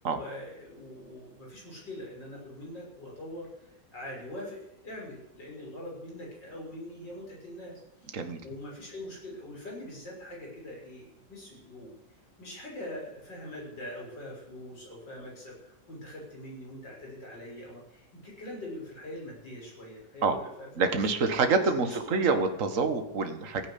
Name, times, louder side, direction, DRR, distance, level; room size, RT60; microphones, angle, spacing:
voice 1, 0.0-11.9 12.4-21.1 21.6-22.4, left 1 dB, 80° left, -2 dB, 7.1 m, -43 dB
voice 2, 20.8-23.7, right 4 dB, 45° right, 7 dB, 1.9 m, -26 dB
16.5 x 9.5 x 8.6 m, 0.88 s
omnidirectional pair, 1.9 m